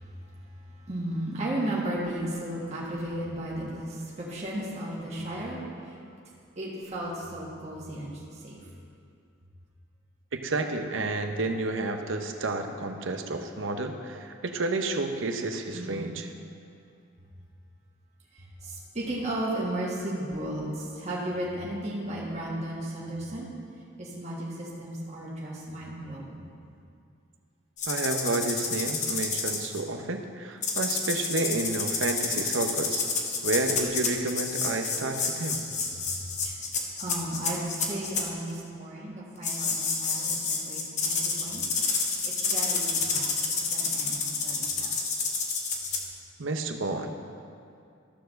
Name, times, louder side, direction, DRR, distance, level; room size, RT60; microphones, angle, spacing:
voice 1, 0.0-6.0 6.5-8.6 15.7-15.9 18.4-23.5 24.0-26.4 35.9-36.6 37.0-41.6 42.5-44.9, right 1 dB, 35° right, -6 dB, 1.6 m, -35 dB
voice 2, 10.3-16.3 27.9-33.1 33.4-35.6 46.4-47.1, right 2 dB, 75° right, 5 dB, 0.8 m, -30 dB
sound 1, 27.8-29.8 30.6-38.2 39.4-46.0, left 4 dB, 35° left, 1.0 m, -29 dB
13.5 x 4.7 x 6.4 m, 2.4 s
head